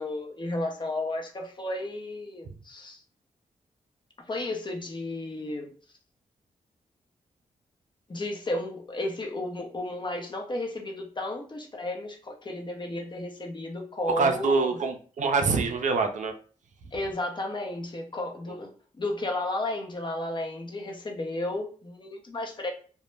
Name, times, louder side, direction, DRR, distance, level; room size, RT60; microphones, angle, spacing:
voice 1, 0.0-3.0 4.3-5.7 8.1-14.8 16.9-22.7, left 2 dB, 35° left, 2 dB, 0.7 m, -33 dB
voice 2, 14.1-16.3, right 4 dB, 60° right, 6 dB, 0.4 m, -25 dB
2.2 x 2.0 x 3.1 m, 0.41 s
supercardioid pair, 50°, 14 cm